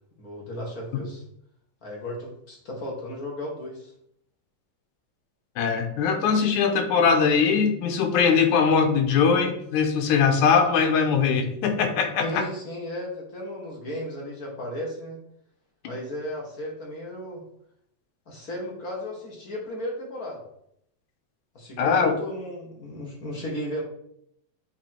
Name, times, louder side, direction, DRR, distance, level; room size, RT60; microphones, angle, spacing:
voice 1, 0.2-1.2 1.8-3.9 12.2-15.2 15.8-17.4 18.3-20.4 21.5-23.8, equal, 40° left, -1 dB, 1.5 m, -35 dB
voice 2, 5.6-12.4 21.8-22.1, left 6 dB, 90° left, 5 dB, 2.3 m, -21 dB
8.7 x 3.1 x 4.4 m, 0.71 s
omnidirectional pair, 3.4 m